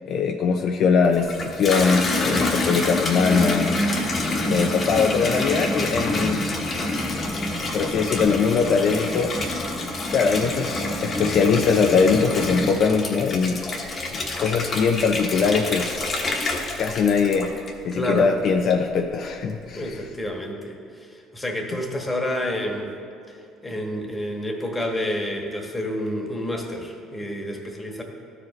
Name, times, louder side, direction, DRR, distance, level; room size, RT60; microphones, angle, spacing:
voice 1, 0.1-3.8 4.5-6.4 7.7-9.3 10.1-13.6 14.1-16.1 16.8-20.0, left 5 dB, 60° left, 4 dB, 0.5 m, -21 dB
Water tap faucet / Bathtub (filling or washing), 1.0-18.0 18.4-19.0, left 2 dB, 40° left, 1.1 m, -27 dB
voice 2, 17.9-18.3 19.7-22.9 23.6-28.0, left 1 dB, 15° left, 1 dB, 1.4 m, -29 dB
12.5 x 4.9 x 3.2 m, 2.6 s
supercardioid pair, 85°, 0 cm